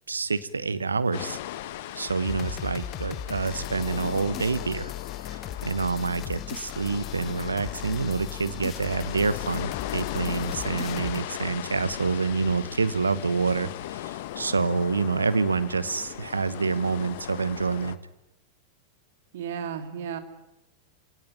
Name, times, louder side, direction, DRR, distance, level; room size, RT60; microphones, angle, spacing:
voice 1, 0.1-1.4 1.9-4.9 5.3-18.0, right 4 dB, 75° right, 15 dB, 1.1 m, -27 dB
sound 1, 1.1-18.0, left 14 dB, 50° left, 1.1 m, -38 dB
sound 2, 1.5-4.8 5.7-7.3, left 1 dB, 80° left, 3.4 m, -51 dB
sound 3, 2.2-11.2, left 11 dB, 30° left, 1.2 m, -37 dB
voice 2, 19.3-20.2, right 8 dB, 55° right, 8 dB, 2.3 m, -33 dB
26.5 x 17.5 x 8.9 m, 0.93 s
figure-of-eight pair, 90°, 0 cm